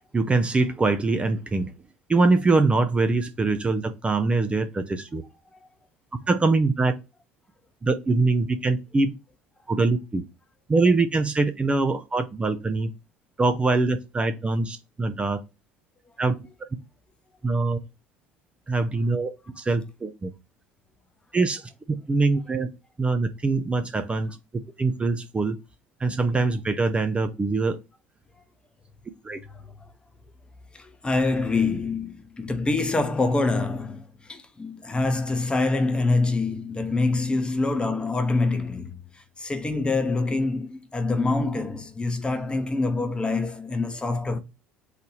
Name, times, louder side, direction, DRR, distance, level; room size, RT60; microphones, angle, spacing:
voice 1, 0.1-1.7 2.1-5.2 6.3-6.9 7.8-9.2 9.7-10.2 10.7-12.9 13.4-15.4 16.2-16.3 17.4-17.8 18.7-20.3 21.3-21.7 22.1-22.7 23.0-24.4 24.8-25.6 26.0-27.8 29.2-29.4, right 3 dB, 20° right, 0.6 m, -23 dB
voice 2, 30.7-44.4, left 3 dB, 15° left, 0.9 m, -25 dB
4.1 x 2.7 x 4.6 m
figure-of-eight pair, 65°, 6 cm